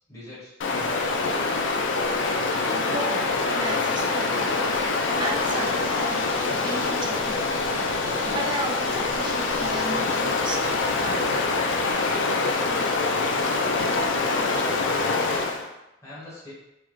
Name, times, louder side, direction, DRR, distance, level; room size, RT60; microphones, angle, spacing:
voice 1, 0.1-1.7 16.0-16.5, left 2 dB, 15° left, -9 dB, 1.0 m, -41 dB
Stream, 0.6-15.7, left 3 dB, 85° left, 0.4 m, -25 dB
voice 2, 2.8-4.6 5.2-6.2 6.6-7.5 8.2-10.6 11.0-11.2, right 2 dB, 25° right, 2 dB, 0.3 m, -34 dB
sound 1, 2.9-11.9, equal, 75° right, 1.5 m, -46 dB
3.7 x 2.1 x 3.1 m, 0.92 s
head